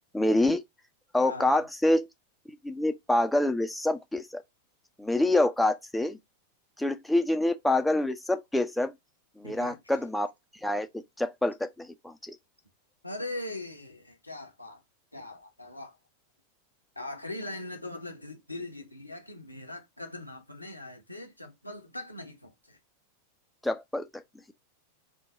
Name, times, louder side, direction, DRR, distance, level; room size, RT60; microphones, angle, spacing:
voice 1, 0.1-0.6 1.1-2.1 2.6-4.4 5.0-6.2 6.8-8.9 9.4-10.3 10.6-10.9 11.2-12.4 23.6-24.2, left 1 dB, 5° left, 0.4 m, -26 dB
voice 2, 1.2-1.6 9.4-9.8 13.0-14.8 15.1-16.0 17.0-22.8, left 2 dB, 85° left, 0.8 m, -40 dB
3.5 x 2.3 x 3.9 m
figure-of-eight pair, 90°, 0 cm